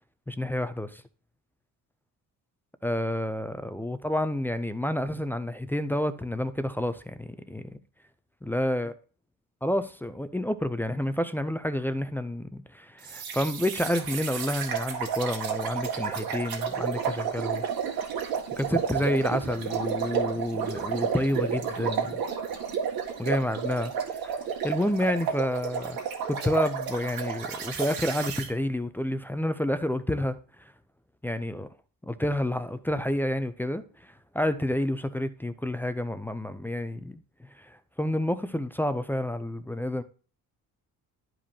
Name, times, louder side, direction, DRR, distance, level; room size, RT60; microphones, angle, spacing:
voice 1, 0.3-1.0 2.8-7.8 8.4-8.9 9.6-17.6 18.6-22.2 23.2-26.0 26.3-30.7 31.2-31.7 32.0-40.0, left 1 dB, 5° left, 0.3 m, -29 dB
sound 1, 13.0-28.5, right 7 dB, 80° right, 1.9 m, -31 dB
12.0 x 5.1 x 2.7 m
cardioid pair, 145°, 36 cm